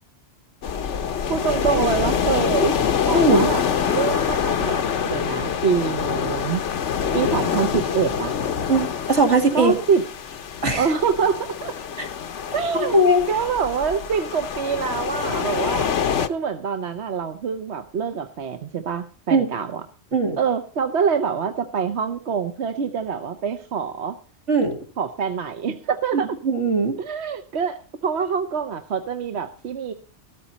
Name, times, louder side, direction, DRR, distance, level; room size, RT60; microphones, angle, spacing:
sound 1, 0.6-16.3, left 7 dB, 75° left, 1.2 m, -25 dB
voice 1, 1.3-2.8 3.1-6.6 7.1-8.4 9.5-10.0 10.8-11.7 12.5-15.9 16.3-19.8 20.4-24.2 25.0-26.3 27.0-29.9, right 6 dB, 65° right, 7 dB, 1.1 m, -25 dB
voice 2, 3.1-3.5 8.7-9.8 10.6-10.9 12.0-12.1 12.7-13.2 19.3-19.5 20.1-20.4 24.5-24.8 26.4-27.0, right 2 dB, 85° right, 3 dB, 2.5 m, -19 dB
13.5 x 13.5 x 4.1 m, 0.36 s
omnidirectional pair, 1.2 m